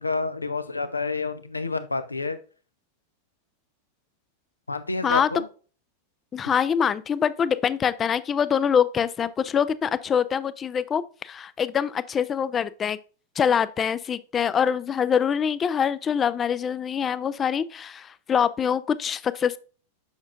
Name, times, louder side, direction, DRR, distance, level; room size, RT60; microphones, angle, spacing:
voice 1, 0.0-2.4 4.7-5.4, left 3 dB, 80° left, 0.6 m, -29 dB
voice 2, 6.3-13.0 13.4-19.6, left 7 dB, 25° left, 0.4 m, -24 dB
7.2 x 6.1 x 2.4 m
figure-of-eight pair, 90°, 0 cm